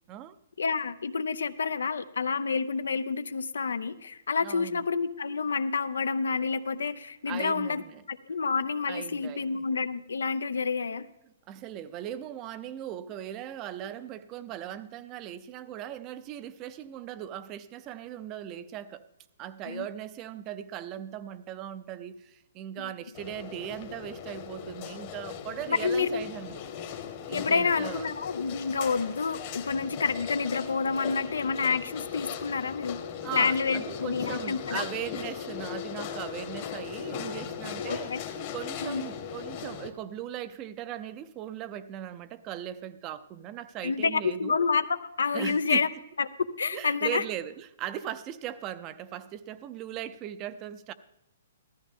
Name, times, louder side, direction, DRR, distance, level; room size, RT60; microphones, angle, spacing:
voice 1, 0.6-7.8 8.1-11.1 19.7-19.9 25.7-26.2 27.3-33.0 33.3-34.8 37.9-38.2 38.8-39.0 43.8-45.9 46.2-46.3 46.6-47.2, left 5 dB, 90° left, 13 dB, 0.6 m, -28 dB
voice 2, 4.4-4.9 7.3-8.0 8.9-9.6 11.5-19.1 19.4-26.6 27.3-28.1 33.2-38.1 38.5-44.5 45.3-45.9 46.7-50.9, right 11 dB, 25° right, 15 dB, 0.5 m, -39 dB
sound 1, 23.1-39.9, left 8 dB, 40° left, 1.1 m, -38 dB
14.0 x 13.5 x 3.6 m, 0.88 s
hypercardioid pair, 150°, 0 cm